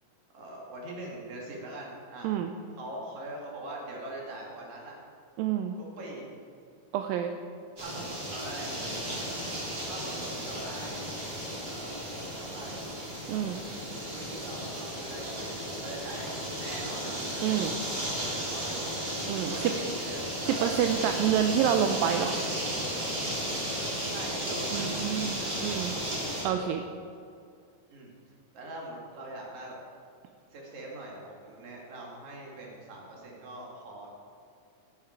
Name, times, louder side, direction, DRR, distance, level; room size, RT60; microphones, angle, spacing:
voice 1, 0.3-2.3 2.8-4.9 5.8-6.3 7.8-8.7 9.8-11.0 11.7-12.8 14.1-17.7 18.5-18.9 19.4-21.1 24.0-25.8 27.9-28.1 28.5-29.8 30.5-34.1, right 1 dB, 55° right, -3 dB, 3.5 m, -42 dB
voice 2, 5.4-5.7 6.9-7.3 13.3-13.6 17.4-17.7 19.3-19.5 20.6-22.4 24.7-25.9 26.4-26.8, right 9 dB, 85° right, 6 dB, 2.3 m, -28 dB
sound 1, 7.8-26.4, equal, 30° right, 3.4 m, -34 dB
17.5 x 8.7 x 4.6 m, 2.4 s
omnidirectional pair, 4.1 m